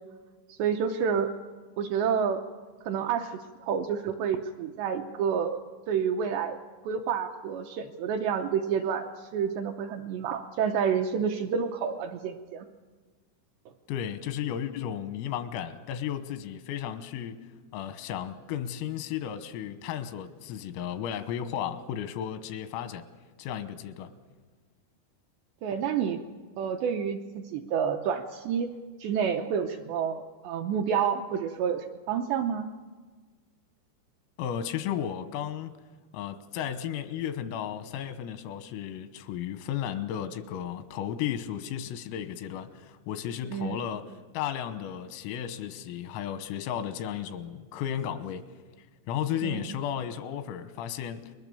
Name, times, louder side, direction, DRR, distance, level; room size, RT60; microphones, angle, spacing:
voice 1, 0.5-1.3 1.8-2.4 2.8-5.6 5.9-6.6 6.8-12.7 25.6-26.2 26.6-28.7 29.0-32.7 43.5-43.8 49.4-49.7, right 7 dB, 80° right, 2.5 m, -29 dB
voice 2, 13.9-23.1 23.4-24.1 34.4-35.7 36.1-48.5 49.1-51.4, left 9 dB, 90° left, 3.8 m, -34 dB
30.0 x 21.0 x 6.9 m
omnidirectional pair, 5.9 m